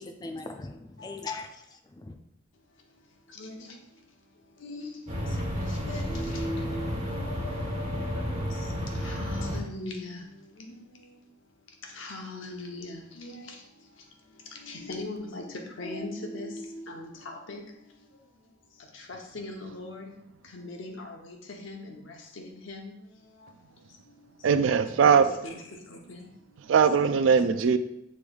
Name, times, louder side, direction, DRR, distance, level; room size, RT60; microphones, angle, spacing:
voice 1, 0.0-2.2, left 3 dB, 20° left, 0.3 m, -40 dB
voice 2, 2.5-24.5 25.2-26.7 27.0-27.4, left 2 dB, 80° left, 0.8 m, -42 dB
sound 1, 5.1-9.6, equal, 40° right, 1.3 m, -32 dB
voice 3, 24.4-25.3 26.7-27.8, right 6 dB, 80° right, 0.3 m, -20 dB
6.9 x 3.1 x 2.3 m
head